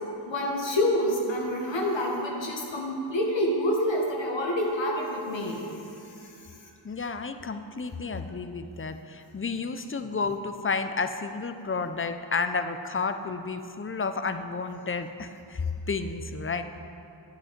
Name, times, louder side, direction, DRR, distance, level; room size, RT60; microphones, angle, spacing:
voice 1, 0.3-5.8 6.1-6.3, left 1 dB, 70° left, -2 dB, 1.6 m, -27 dB
voice 2, 6.8-16.6, left 4 dB, 30° left, 9 dB, 0.6 m, -31 dB
9.6 x 8.1 x 5.2 m, 2.8 s
cardioid pair, 60°, 46 cm